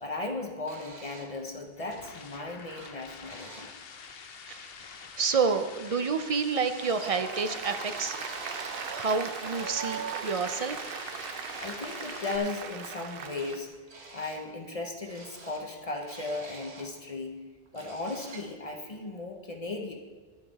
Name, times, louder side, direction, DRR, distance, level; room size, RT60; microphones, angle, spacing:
voice 1, 0.0-3.7 11.6-13.7 14.1-17.4 17.7-19.9, left 3 dB, 35° left, 2 dB, 0.8 m, -36 dB
sound 1, 0.6-1.3 2.3-2.4 2.7-3.0 3.2-3.7 6.2-7.1 7.5-8.9 10.3-10.4 11.4-11.7 12.1-12.6 12.9-13.6 13.9-14.4 15.0-16.9 17.4-17.5 17.7-18.5, right 3 dB, 85° right, 1.6 m, -48 dB
sound 2, 1.4-12.4, left 6 dB, 70° left, 0.9 m, -47 dB
voice 2, 5.0-8.2 8.9-11.0, right 5 dB, 45° right, 9 dB, 0.5 m, -29 dB
Applause, 6.8-13.6, right 6 dB, 65° right, 0.9 m, -38 dB
11.5 x 8.9 x 4.1 m, 1.4 s
omnidirectional pair, 1.1 m